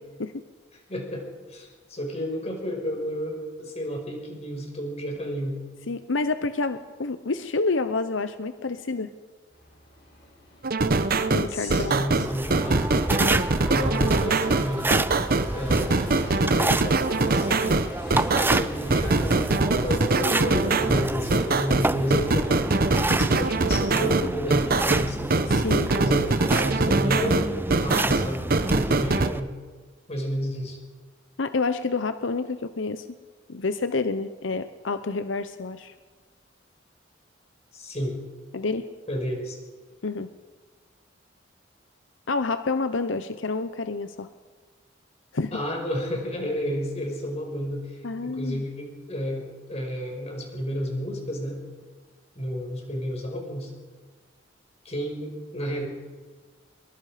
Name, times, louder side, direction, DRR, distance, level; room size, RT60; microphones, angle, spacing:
voice 1, 0.9-5.6 11.5-12.9 13.7-15.0 15.5-16.0 16.3-17.8 18.2-22.5 23.2-25.5 25.9-29.5 30.1-30.8 37.7-38.2 39.1-39.6 45.5-51.6 52.4-53.7 54.8-55.9, equal, 35° left, 1 dB, 5.5 m, -31 dB
voice 2, 5.9-9.1 11.3-12.0 25.5-25.9 31.4-33.0 33.5-35.9 38.5-38.9 40.0-40.3 42.3-44.3 45.3-45.6 48.0-48.6, left 3 dB, 90° left, 11 dB, 0.8 m, -28 dB
sound 1, 9.5-24.1 24.6-25.2, left 1 dB, 65° left, 7.7 m, -48 dB
sound 2, 10.6-29.3, right 3 dB, 50° right, 1.0 m, -23 dB
sound 3, 12.2-29.4, right 2 dB, 10° right, 0.5 m, -29 dB
23.5 x 23.0 x 5.1 m, 1.4 s
head